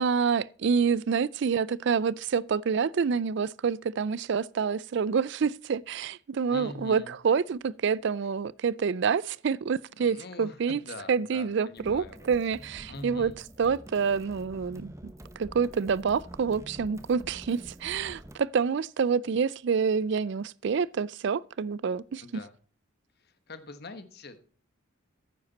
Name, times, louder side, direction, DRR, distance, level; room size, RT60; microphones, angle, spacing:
voice 1, 0.0-10.8 11.1-13.3 13.6-22.2, right 6 dB, 55° right, 0.4 m, -27 dB
voice 2, 6.5-7.1 10.0-12.3 12.9-13.4 22.2-22.5 23.2-24.5, left 2 dB, 50° left, 1.2 m, -44 dB
sound 1, 11.8-18.4, right 1 dB, 15° right, 0.9 m, -47 dB
10.0 x 9.4 x 4.1 m
head